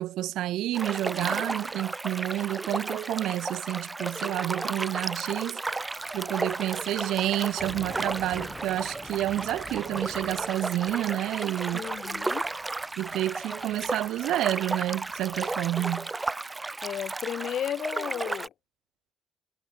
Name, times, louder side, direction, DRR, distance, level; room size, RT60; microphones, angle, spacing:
voice 1, 0.0-5.6 6.1-11.9 13.0-16.1, right 14 dB, 85° right, 0.5 m, -29 dB
sound 1, 0.7-18.5, right 3 dB, 20° right, 0.8 m, -34 dB
Thunder / Rain, 5.7-15.7, left 3 dB, 25° left, 0.9 m, -49 dB
voice 2, 11.7-12.5 16.8-18.5, left 10 dB, 70° left, 0.3 m, -34 dB
cardioid pair, 90°, 0 cm